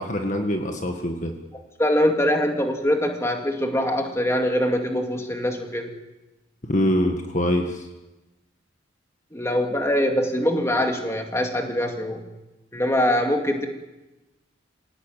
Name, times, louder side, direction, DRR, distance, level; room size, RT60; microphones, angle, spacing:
voice 1, 0.0-1.3 6.7-7.9, equal, 35° left, 4 dB, 1.8 m, -24 dB
voice 2, 1.8-5.9 9.3-12.2 12.7-13.7, equal, 15° left, 3 dB, 2.3 m, -23 dB
26.0 x 17.5 x 9.1 m, 1.1 s
head